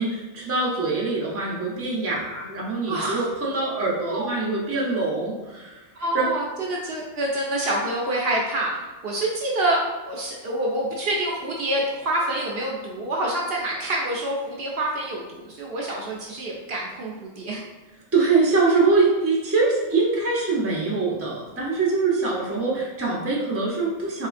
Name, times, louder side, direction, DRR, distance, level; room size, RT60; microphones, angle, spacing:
voice 1, 0.0-5.8 6.1-6.3 18.1-24.3, right 3 dB, 15° right, -4 dB, 0.6 m, -23 dB
voice 2, 2.9-3.3 4.0-4.3 4.9-5.0 6.0-17.6, right 1 dB, 60° right, -2 dB, 0.8 m, -27 dB
3.5 x 3.1 x 2.5 m, 1.2 s
omnidirectional pair, 1.2 m